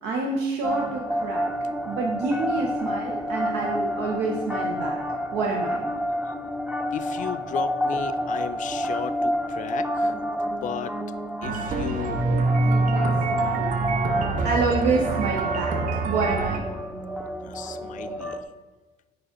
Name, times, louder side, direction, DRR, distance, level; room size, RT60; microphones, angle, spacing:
voice 1, 0.0-1.4 1.9-5.0 5.3-5.9 11.8-12.1 12.6-13.7 14.4-15.8 16.0-16.7, right 4 dB, 90° right, 0 dB, 0.8 m, -28 dB
sound 1, 0.6-18.4, equal, 5° right, 0.5 m, -28 dB
voice 2, 6.9-10.2 10.6-10.9 11.4-12.2 17.4-18.4, left 10 dB, 50° left, 12 dB, 0.4 m, -35 dB
sound 2, 11.4-16.6, right 4 dB, 55° right, 0.7 m, -29 dB
4.8 x 4.7 x 5.0 m, 1.3 s
cardioid pair, 110°, 17 cm